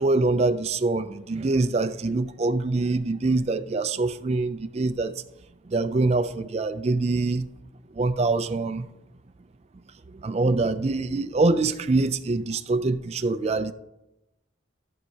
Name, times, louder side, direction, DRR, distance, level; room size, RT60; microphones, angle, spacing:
voice 1, 0.0-5.2 5.7-7.5 8.0-8.9 10.1-13.7, right 3 dB, 30° right, 0.3 m, -24 dB
14.5 x 6.5 x 2.8 m
head